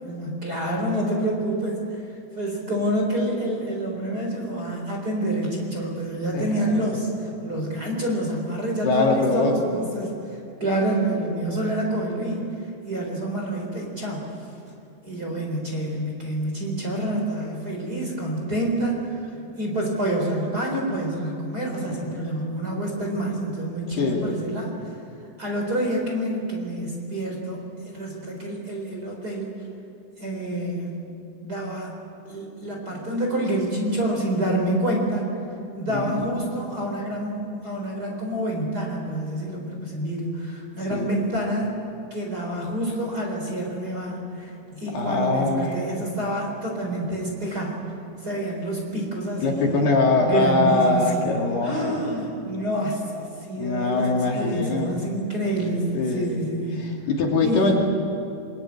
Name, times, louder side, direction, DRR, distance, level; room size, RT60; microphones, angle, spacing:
voice 1, 0.0-2.0 2.4-12.5 12.8-14.3 15.0-19.2 19.5-24.7 25.4-29.6 30.2-31.0 31.4-31.9 32.3-35.2 35.7-41.7 42.1-47.8 48.2-49.8 50.2-51.2 51.6-56.9 57.4-57.7, right 1 dB, 20° right, -1 dB, 4.1 m, -27 dB
voice 2, 6.3-6.9 8.8-9.6 21.9-22.2 23.9-24.3 35.9-36.3 40.9-41.1 44.9-45.8 49.4-52.0 53.6-55.0 55.9-56.4 56.7-57.7, left 3 dB, 60° left, 0 dB, 4.8 m, -23 dB
26.5 x 23.0 x 9.7 m, 2.7 s
omnidirectional pair, 5.3 m